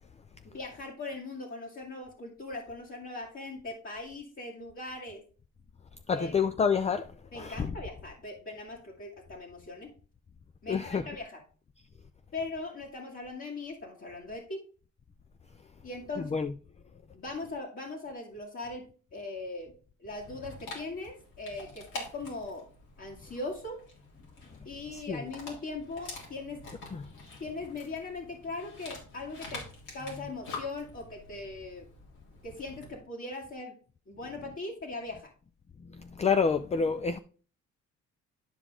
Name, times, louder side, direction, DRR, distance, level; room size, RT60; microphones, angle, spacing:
voice 1, 0.4-5.2 6.1-6.3 7.3-9.9 10.6-11.4 12.3-14.6 15.8-16.3 17.1-18.9 19.1-19.7 20.0-22.6 23.0-23.8 24.6-26.6 27.4-31.9 32.4-33.7 34.1-35.3, left 2 dB, 45° left, 2.2 m, -40 dB
voice 2, 6.1-7.7 10.7-11.1 16.2-16.5 24.9-25.2 26.9-27.1 35.9-37.2, left 5 dB, 20° left, 0.4 m, -28 dB
Dog, 20.1-33.0, left 3 dB, 80° left, 3.4 m, -47 dB
11.0 x 5.0 x 3.6 m
cardioid pair, 90°, 30 cm